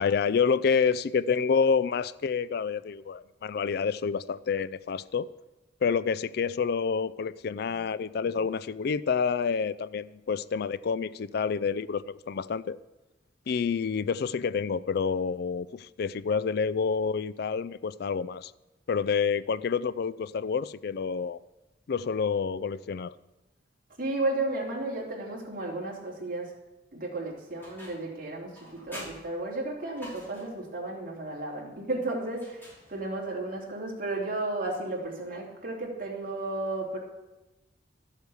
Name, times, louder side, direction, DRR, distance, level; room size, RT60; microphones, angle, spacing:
voice 1, 0.0-5.3 5.8-12.8 13.5-18.5 18.9-21.4 21.9-23.1, left 6 dB, 60° left, 0.4 m, -28 dB
voice 2, 24.0-26.5 26.9-32.6 32.9-37.0, right 2 dB, 50° right, 3.1 m, -33 dB
sound 1, 27.6-28.2 28.5-30.6 32.3-33.3, equal, 10° left, 6.0 m, -47 dB
13.0 x 8.1 x 7.0 m
head